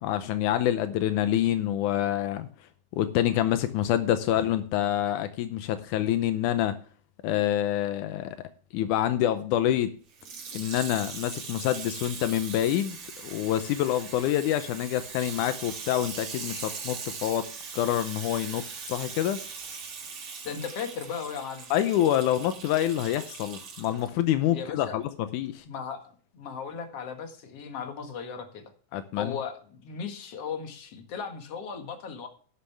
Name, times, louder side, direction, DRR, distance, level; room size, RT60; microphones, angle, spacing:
voice 1, 0.0-2.5 3.0-6.7 7.2-8.4 8.7-9.9 10.5-13.0 13.2-17.5 17.7-19.4 21.7-25.6 28.9-29.4, left 12 dB, 85° left, 10 dB, 2.2 m, -26 dB
Water tap faucet / Sink (filling or washing), 10.1-24.1 24.8-24.9, right 5 dB, 50° right, 2.6 m, -40 dB
voice 2, 20.4-21.7 24.5-25.0 25.7-28.6 29.2-32.3, left 6 dB, 55° left, 5 dB, 2.6 m, -37 dB
11.5 x 11.5 x 3.4 m, 0.43 s
omnidirectional pair, 3.5 m